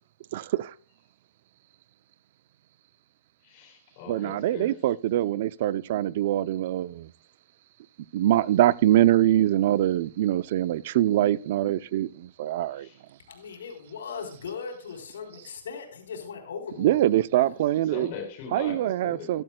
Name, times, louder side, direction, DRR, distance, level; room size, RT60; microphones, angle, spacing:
voice 1, 0.3-0.7 4.1-7.1 8.1-12.9 16.8-18.1 18.5-19.4, right 13 dB, 55° right, 0.6 m, -24 dB
voice 2, 3.4-4.7 12.8-12.9 17.9-19.3, left 5 dB, 45° left, 4.2 m, -40 dB
voice 3, 13.3-17.6, left 5 dB, 85° left, 4.1 m, -39 dB
14.5 x 12.5 x 2.3 m
hypercardioid pair, 145°, 0 cm